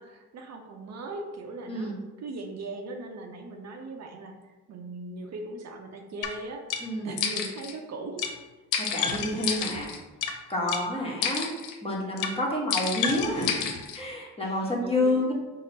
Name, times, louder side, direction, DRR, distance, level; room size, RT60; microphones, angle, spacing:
voice 1, 0.0-6.6 7.0-8.4 14.4-15.3, right 2 dB, 60° right, 3 dB, 0.7 m, -39 dB
sound 1, 6.2-6.3 6.7-6.8 7.2-7.7 8.2-8.3 8.7-10.3 10.7-10.8 11.2-11.7 12.2-12.3 12.7-14.0, left 7 dB, 85° left, 0.6 m, -30 dB
voice 2, 8.8-9.9 10.5-11.5 11.8-13.7 13.9-15.3, left 1 dB, 20° left, -3 dB, 1.2 m, -29 dB
5.3 x 2.1 x 4.0 m, 1.1 s
cardioid pair, 90°, 30 cm